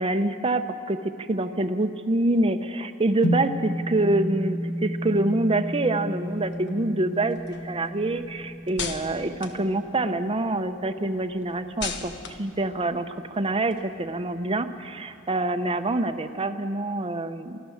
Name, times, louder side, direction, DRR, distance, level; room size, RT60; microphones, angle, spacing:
voice 1, 0.0-12.1 12.4-17.6, right 2 dB, 30° right, 8 dB, 0.8 m, -26 dB
sound 1, 3.2-11.7, equal, 75° left, 2.1 m, -32 dB
sound 2, 6.3-10.4 10.8-14.3, left 5 dB, 60° left, 1.4 m, -39 dB
24.0 x 15.5 x 7.2 m, 2.4 s
head